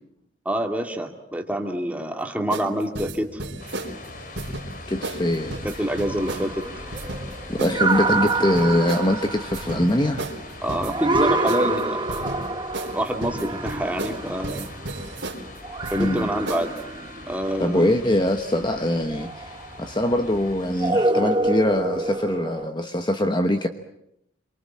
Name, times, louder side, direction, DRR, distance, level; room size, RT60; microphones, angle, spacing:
voice 1, 0.5-3.4 5.6-6.7 10.6-12.4 12.9-14.7 15.9-16.7 17.3-17.9, right 1 dB, 10° right, 3 dB, 2.3 m, -27 dB
sound 1, 2.5-2.7 3.0-3.9 4.4-4.7 5.0-5.2 5.5-6.4 6.9-7.2 7.6-7.8 8.1-9.1 9.5-9.9 10.2-10.4 10.7-11.7 12.1-12.4 12.7-13.0 13.2-14.2 14.4-15.4 15.8-16.2 16.5-16.8, right 2 dB, 80° right, 3.8 m, -32 dB
sound 2, 3.6-20.9, left 2 dB, 45° left, 2.9 m, -42 dB
voice 2, 4.9-5.6 7.5-10.3 16.0-16.3 17.6-23.7, left 1 dB, 25° left, 6 dB, 1.1 m, -23 dB
sound 3, 5.5-15.2 15.6-17.6 19.1-19.8 20.8-22.7, right 2 dB, 25° right, 1.2 m, -27 dB
28.0 x 24.0 x 7.5 m, 0.79 s
head